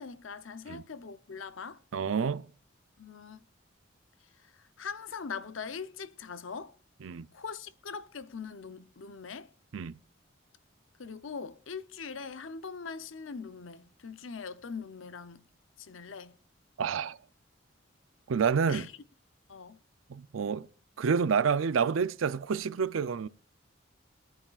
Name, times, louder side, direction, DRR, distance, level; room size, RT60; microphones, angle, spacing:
voice 1, 0.0-1.8 3.0-3.4 4.8-6.7 7.3-9.5 11.0-15.4 15.8-16.4 18.7-18.9 19.5-19.8, left 5 dB, 80° left, 0.7 m, -41 dB
voice 2, 1.9-2.5 7.0-7.3 9.7-10.0 16.8-17.2 18.3-18.9 20.1-20.7 21.0-23.3, right 6 dB, 85° right, 0.5 m, -28 dB
23.5 x 9.0 x 2.4 m
head